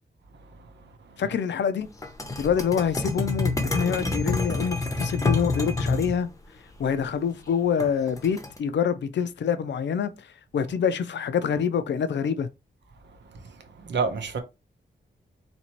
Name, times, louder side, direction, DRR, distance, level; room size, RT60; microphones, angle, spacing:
voice 1, 1.2-1.9 2.4-6.3 6.8-10.1 10.5-12.5, left 7 dB, 80° left, 0.5 m, -26 dB
sound 1, 2.0-6.2 7.8-8.6, left 3 dB, 20° left, 0.7 m, -27 dB
voice 2, 13.4-14.4, right 5 dB, 90° right, 0.8 m, -29 dB
4.3 x 3.0 x 2.9 m
wide cardioid pair, 180°, 18 cm